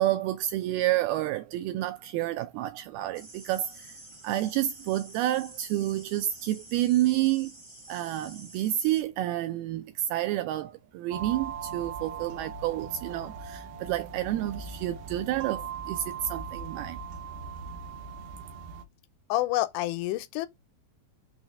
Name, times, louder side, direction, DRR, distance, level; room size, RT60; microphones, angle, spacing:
voice 1, 0.0-4.0 4.2-7.5 7.9-17.0, right 14 dB, 90° right, 2.1 m, -29 dB
sound 1, 3.1-9.0, right 2 dB, 45° right, 0.3 m, -49 dB
sound 2, 11.1-18.8, right 6 dB, 70° right, 2.3 m, -39 dB
voice 2, 19.3-20.5, left 16 dB, 90° left, 2.8 m, -28 dB
6.2 x 3.2 x 5.2 m
omnidirectional pair, 4.9 m